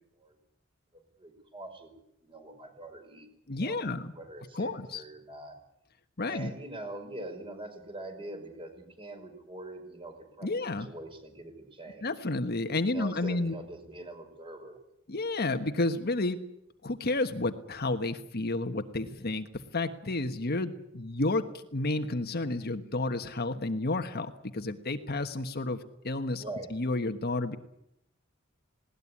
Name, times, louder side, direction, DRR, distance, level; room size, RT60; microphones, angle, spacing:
voice 1, 1.2-1.9 2.2-5.6 6.2-12.1 12.8-14.8 26.4-26.7, right 2 dB, 25° right, 5 dB, 5.3 m, -43 dB
voice 2, 3.5-4.1 4.5-5.0 6.2-6.5 10.4-10.9 12.0-13.6 15.1-16.4 16.8-26.4 26.7-27.6, left 2 dB, 50° left, 8 dB, 1.4 m, -31 dB
20.0 x 18.5 x 9.9 m, 0.79 s
head